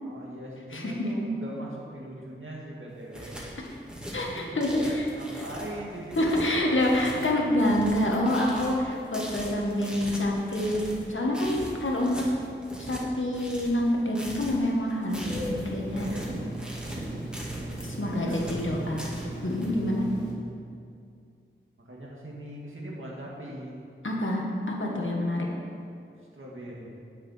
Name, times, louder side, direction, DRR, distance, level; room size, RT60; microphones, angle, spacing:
voice 1, 0.0-3.4 4.3-7.4 16.0-17.1 17.4-17.6 17.9-18.5 21.8-23.8 26.3-26.9, right 1 dB, 75° right, -3 dB, 2.0 m, -41 dB
voice 2, 0.7-1.1 4.1-5.0 6.2-10.8 11.1-12.2 12.8-16.1 17.8-19.1 19.4-20.1 24.0-25.5, left 1 dB, 70° left, -2 dB, 1.6 m, -27 dB
sound 1, 2.9-19.7, equal, 5° right, 2.0 m, -41 dB
Telephone, 15.2-20.3, right 1 dB, 35° right, 2.7 m, -37 dB
8.9 x 6.8 x 5.7 m, 2.4 s
wide cardioid pair, 65°, 21 cm